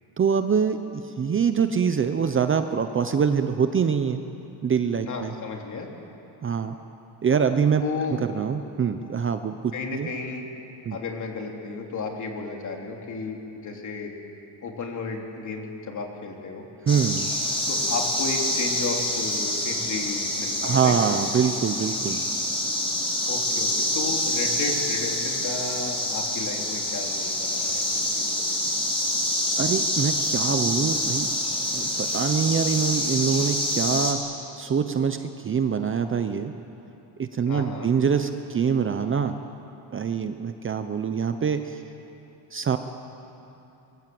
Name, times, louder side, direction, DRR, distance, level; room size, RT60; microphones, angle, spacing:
voice 1, 0.2-0.8 1.0-4.2 4.6-5.3 6.4-6.8 7.2-7.8 8.3-10.1 10.9-11.0 16.8-17.3 20.6-22.2 29.6-31.3 31.7-34.2 34.6-36.5 37.2-39.4 39.9-41.8 42.5-42.8, right 6 dB, 25° right, 8 dB, 0.8 m, -24 dB
voice 2, 5.0-5.9 7.8-8.2 9.7-10.5 10.9-14.1 14.6-16.6 17.7-21.0 23.3-28.6 37.5-37.9, left 4 dB, 40° left, 1 dB, 3.3 m, -33 dB
sound 1, 16.9-34.1, left 1 dB, 10° left, 4.1 m, -26 dB
25.0 x 23.0 x 7.8 m, 2.9 s
cardioid pair, 150°, 45 cm